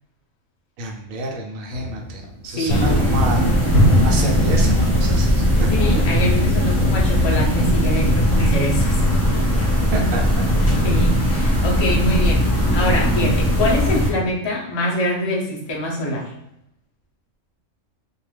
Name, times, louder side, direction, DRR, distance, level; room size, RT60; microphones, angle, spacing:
voice 1, 0.8-5.5 9.9-10.2, right 1 dB, 85° right, 1 dB, 1.0 m, -29 dB
sound 1, 1.7-7.7, left 1 dB, 80° left, 1.0 m, -25 dB
voice 2, 2.6-3.0 5.7-9.0 9.9-10.1 10.8-12.5 12.7-16.3, left 1 dB, 40° left, -3 dB, 0.3 m, -24 dB
sound 2, 2.7-14.1, equal, 15° left, 0.7 m, -18 dB
2.4 x 2.2 x 3.2 m, 0.80 s
omnidirectional pair, 1.4 m